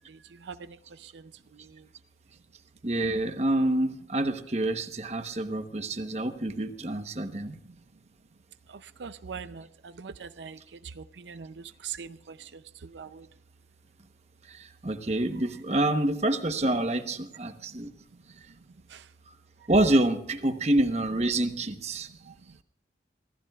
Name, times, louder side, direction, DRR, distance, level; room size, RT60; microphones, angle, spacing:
voice 1, 0.0-1.9 8.7-13.3 18.9-19.1 22.2-22.3, right 6 dB, 90° right, 0.5 m, -43 dB
voice 2, 2.8-7.6 14.5-17.9 19.7-22.1, right 1 dB, 40° right, 1.0 m, -27 dB
25.5 x 15.0 x 2.4 m
head